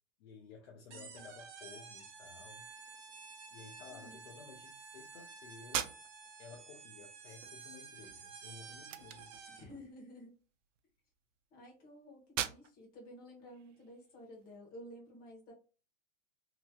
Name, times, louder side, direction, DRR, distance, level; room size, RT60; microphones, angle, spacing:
voice 1, 0.2-2.7 3.5-6.0 6.4-9.7, left 5 dB, 55° left, 0.8 m, -54 dB
voice 2, 0.9-1.3 3.9-4.2 9.5-10.3 11.5-15.5, equal, 25° left, 1.2 m, -53 dB
sound 1, 0.9-9.8, right 5 dB, 40° right, 1.0 m, -52 dB
sound 2, 5.7-14.6, right 10 dB, 90° right, 0.5 m, -45 dB
3.0 x 2.9 x 2.3 m
supercardioid pair, 155°, 36 cm